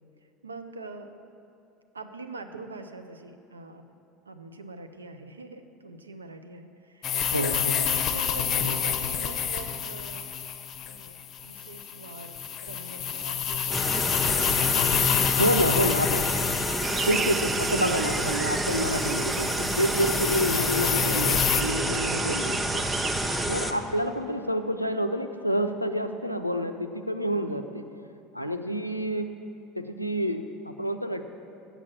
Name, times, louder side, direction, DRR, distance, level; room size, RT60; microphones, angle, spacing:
voice 1, 0.4-1.1 1.9-3.8 4.3-10.3 10.9-15.4, right 3 dB, 80° right, 8 dB, 0.5 m, -43 dB
sound 1, 7.0-21.6, left 8 dB, 40° left, 0.6 m, -28 dB
voice 2, 7.3-7.8 8.6-8.7 15.4-16.3 17.0-22.8 23.5-27.8 28.3-29.3 29.7-31.2, equal, 90° left, 7 dB, 0.4 m, -28 dB
sound 2, 13.7-23.7, equal, 5° right, 0.7 m, -29 dB
sound 3, 16.8-23.5, right 5 dB, 25° right, 0.3 m, -34 dB
8.1 x 7.4 x 7.3 m, 2.7 s
figure-of-eight pair, 70°, 0 cm